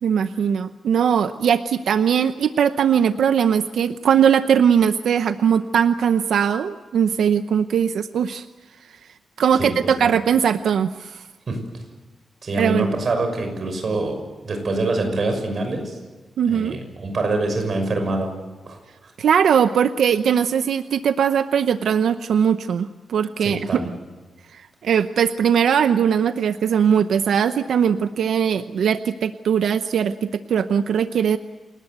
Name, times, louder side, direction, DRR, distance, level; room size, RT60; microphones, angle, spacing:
voice 1, 0.0-8.5 9.4-11.2 12.6-12.9 16.4-16.8 19.2-23.8 24.5-31.4, right 8 dB, 85° right, 10 dB, 0.7 m, -20 dB
voice 2, 12.4-16.0 16.5-18.3 18.7-18.8 23.4-23.9, right 2 dB, 40° right, 5 dB, 6.2 m, -25 dB
28.5 x 19.0 x 8.0 m, 1.3 s
wide cardioid pair, 180°, 0 cm